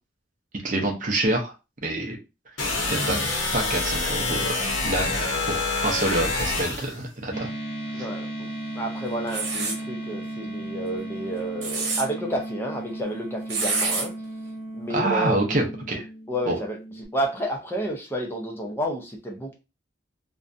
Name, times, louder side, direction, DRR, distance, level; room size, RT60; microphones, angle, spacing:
voice 1, 0.6-1.5 1.8-2.2 2.9-3.2 3.5-7.5 8.0-8.1 14.9-16.1 16.5-16.6, right 1 dB, 40° right, 2 dB, 0.6 m, -27 dB
sound 1, 2.6-7.0, left 3 dB, 75° left, 0.8 m, -26 dB
sound 2, 7.3-17.1, right 1 dB, 30° left, 0.9 m, -35 dB
voice 2, 7.9-8.5 8.7-14.1 14.7-15.4 16.3-19.6, right 1 dB, 10° left, 1 dB, 0.5 m, -30 dB
sound 3, 9.3-9.8 11.4-12.0 13.5-14.1, right 3 dB, 75° right, 0.9 m, -26 dB
2.5 x 2.2 x 2.5 m, 0.28 s
head